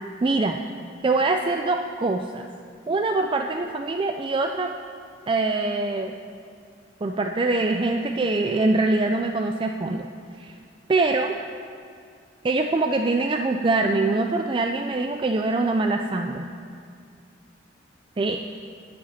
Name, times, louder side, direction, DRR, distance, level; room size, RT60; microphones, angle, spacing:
voice 1, 0.2-0.6 1.0-2.5 2.9-4.7 5.3-6.1 7.0-10.1 10.4-10.5 10.9-11.4 12.4-16.5 18.2-18.4, right 3 dB, 25° right, 4 dB, 0.4 m, -23 dB
20.0 x 7.6 x 4.2 m, 2.2 s
head